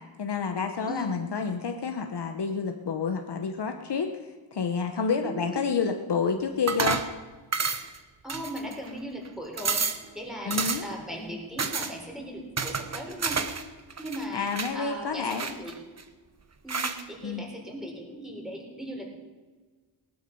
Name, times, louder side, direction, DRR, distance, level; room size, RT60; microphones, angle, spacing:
voice 1, 0.2-4.1 4.5-7.0 10.4-10.9 14.3-15.5 17.2-17.4, left 5 dB, 55° left, 5 dB, 1.1 m, -29 dB
voice 2, 0.9-1.2 5.2-5.8 8.2-9.9 10.1-13.5 14.0-15.7 16.6-19.2, equal, ahead, -1 dB, 4.2 m, -38 dB
sound 1, 6.7-7.1 7.5-8.0 8.3-8.9 9.3-9.4 9.6-10.1 10.5-11.0 11.6-11.9 12.6-13.6 13.9-14.7 15.3-16.0 16.7-17.0, right 5 dB, 35° right, 1.0 m, -30 dB
18.5 x 12.5 x 5.5 m, 1.4 s
wide cardioid pair, 115°, 47 cm